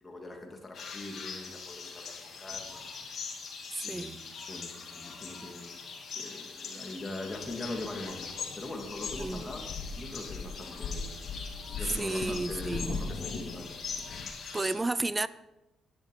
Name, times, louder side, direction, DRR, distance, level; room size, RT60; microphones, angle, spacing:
voice 1, 0.0-2.9 3.8-5.8 6.2-9.7 10.0-11.1 11.5-13.9, left 2 dB, 20° left, 2.8 m, -42 dB
sound 1, 0.7-14.7, left 5 dB, 55° left, 3.1 m, -42 dB
voice 2, 3.7-4.2 9.1-9.4 12.0-13.1 14.5-15.3, right 2 dB, 20° right, 0.5 m, -32 dB
sound 2, 7.3-14.3, left 4 dB, 70° left, 1.4 m, -40 dB
11.0 x 10.5 x 5.7 m
cardioid pair, 90°, 0 cm